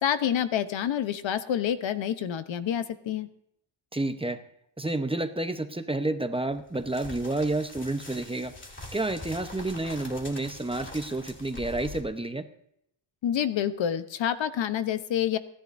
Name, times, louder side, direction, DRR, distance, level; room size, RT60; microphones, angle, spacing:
voice 1, 0.0-3.3 13.2-15.4, left 9 dB, 65° left, 11 dB, 1.0 m, -28 dB
voice 2, 3.9-4.4 4.8-8.5 8.9-12.5, right 2 dB, 10° right, 8 dB, 0.9 m, -30 dB
sound 1, 6.5-12.0, left 2 dB, 25° left, 2.8 m, -43 dB
29.5 x 11.5 x 2.7 m, 0.75 s
cardioid pair, 110°, 48 cm